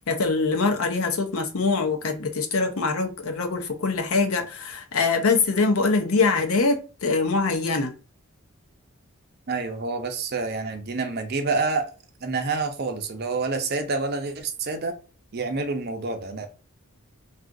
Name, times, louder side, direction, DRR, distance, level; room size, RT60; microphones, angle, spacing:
voice 1, 0.1-7.9, left 4 dB, 80° left, 0.6 m, -23 dB
voice 2, 9.5-11.9 12.2-14.9 15.3-16.5, right 3 dB, 45° right, 0.6 m, -28 dB
2.4 x 2.4 x 3.6 m
head